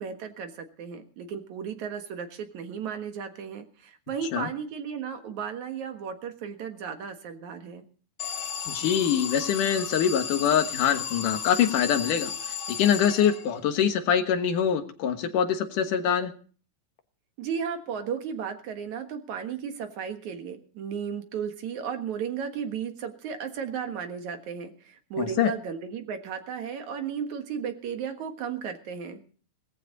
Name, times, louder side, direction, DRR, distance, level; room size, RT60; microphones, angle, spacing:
voice 1, 0.0-7.8 17.4-29.2, right 7 dB, 70° right, 6 dB, 2.9 m, -34 dB
Alarm, 8.2-13.8, left 7 dB, 45° left, 2.8 m, -34 dB
voice 2, 8.7-16.3 25.2-25.5, left 8 dB, 85° left, 7 dB, 2.9 m, -24 dB
18.5 x 14.5 x 4.0 m, 0.41 s
omnidirectional pair, 3.6 m